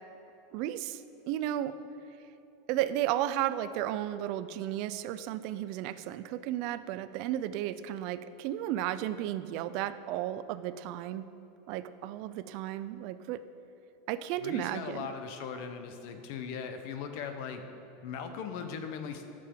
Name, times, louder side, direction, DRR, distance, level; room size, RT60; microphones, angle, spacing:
voice 1, 0.5-1.7 2.7-11.3 11.7-13.4 14.1-15.1, right 12 dB, 55° right, 14 dB, 0.4 m, -33 dB
voice 2, 14.4-17.6 18.0-19.3, left 6 dB, 60° left, 7 dB, 0.8 m, -39 dB
10.0 x 7.5 x 3.8 m, 3.0 s
supercardioid pair, 130°, 0 cm